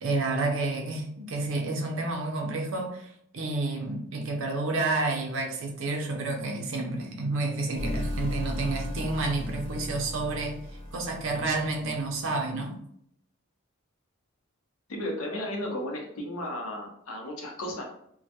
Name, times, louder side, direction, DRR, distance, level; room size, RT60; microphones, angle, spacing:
voice 1, 0.0-10.6 10.9-12.8, right 2 dB, 65° right, 2 dB, 0.5 m, -30 dB
sound 1, 7.7-12.0, left 1 dB, 25° left, 0.5 m, -35 dB
voice 2, 14.9-17.8, left 1 dB, 90° left, 1 dB, 0.6 m, -34 dB
2.2 x 2.1 x 2.7 m, 0.70 s
head